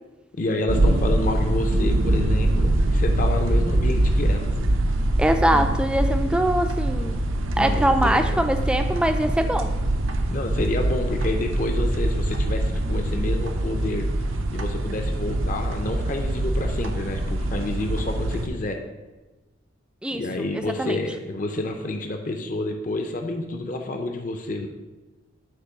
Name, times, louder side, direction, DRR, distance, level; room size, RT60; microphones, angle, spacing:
voice 1, 0.3-4.5 7.6-8.5 10.3-14.1 14.5-18.8 20.1-24.7, left 2 dB, 40° left, 4 dB, 0.5 m, -29 dB
sound 1, 0.7-18.5, right 1 dB, 80° right, 0.7 m, -23 dB
voice 2, 5.2-7.2 7.6-9.7 20.0-20.2 20.8-21.0, right 1 dB, 5° right, 6 dB, 0.3 m, -22 dB
8.1 x 3.1 x 5.9 m, 1.2 s
head